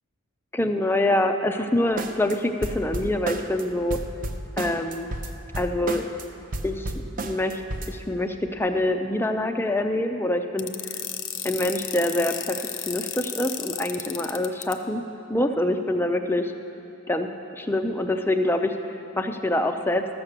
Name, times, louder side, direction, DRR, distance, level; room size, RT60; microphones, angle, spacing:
voice 1, 0.5-4.0 4.6-5.1 5.6-6.0 6.6-7.6 7.9-11.0 11.4-15.0 15.3-16.5 17.1-17.3 17.5-20.1, left 1 dB, 10° left, 6 dB, 0.4 m, -25 dB
sound 1, 2.0-2.3 2.6-3.6 3.9-6.2 6.5-7.9, right 2 dB, 35° right, 0.6 m, -31 dB
sound 2, 10.6-14.7, left 11 dB, 60° left, 0.7 m, -32 dB
13.5 x 7.2 x 6.6 m, 2.9 s
head